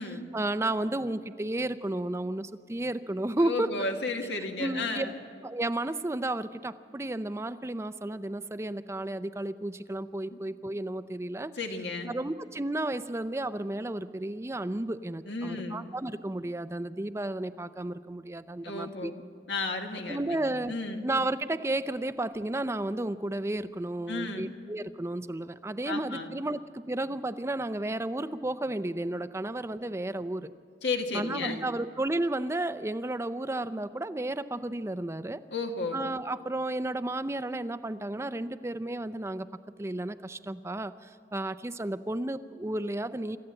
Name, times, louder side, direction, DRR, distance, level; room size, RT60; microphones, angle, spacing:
voice 1, 0.3-3.7 4.6-5.1 5.4-11.5 12.1-19.1 20.1-20.7 21.0-30.5 31.1-35.4 35.9-39.5 39.8-43.4, right 1 dB, 15° right, 13 dB, 0.5 m, -32 dB
voice 2, 3.4-5.2 10.3-10.4 11.6-12.1 15.3-15.8 18.6-19.2 19.5-21.0 24.1-24.5 25.9-26.3 30.8-31.7 35.5-36.1, left 3 dB, 80° left, 3 dB, 1.8 m, -33 dB
26.5 x 13.5 x 7.7 m, 2.1 s
head